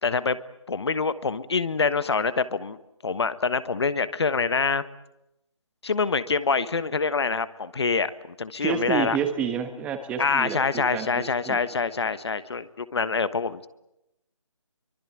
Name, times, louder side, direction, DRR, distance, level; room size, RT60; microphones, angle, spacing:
voice 1, 0.0-0.4 0.7-2.8 3.0-4.8 5.8-9.2 10.2-13.7, left 4 dB, 55° left, 14 dB, 1.3 m, -25 dB
voice 2, 8.6-11.6, right 7 dB, 5° right, 8 dB, 1.4 m, -29 dB
24.0 x 24.0 x 9.0 m, 0.87 s
figure-of-eight pair, 160°, 17 cm